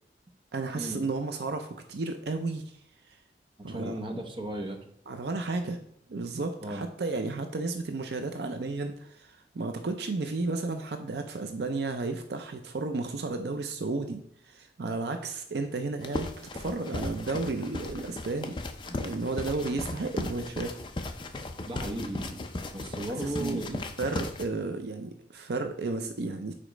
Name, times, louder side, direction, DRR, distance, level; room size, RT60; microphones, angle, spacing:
voice 1, 0.5-2.6 3.6-3.9 5.1-5.8 6.1-18.6 19.0-20.8 23.2-26.5, right 3 dB, 60° right, 6 dB, 0.5 m, -33 dB
voice 2, 3.6-4.8 6.6-6.8 21.7-22.4 22.7-23.8, right 1 dB, 25° right, 2 dB, 0.7 m, -35 dB
sound 1, 16.0-24.5, left 2 dB, 25° left, 0.4 m, -37 dB
5.1 x 4.3 x 4.9 m, 0.72 s
head